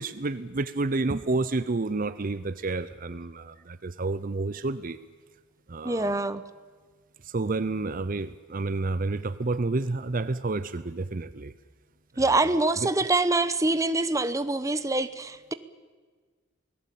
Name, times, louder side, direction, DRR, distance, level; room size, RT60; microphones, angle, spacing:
voice 1, 0.0-5.0 5.7-6.2 7.2-11.5 12.8-12.9, right 3 dB, 45° right, 0.7 m, -30 dB
voice 2, 5.8-6.4 12.2-15.5, right 2 dB, 15° right, 1.0 m, -25 dB
28.0 x 19.0 x 8.5 m
head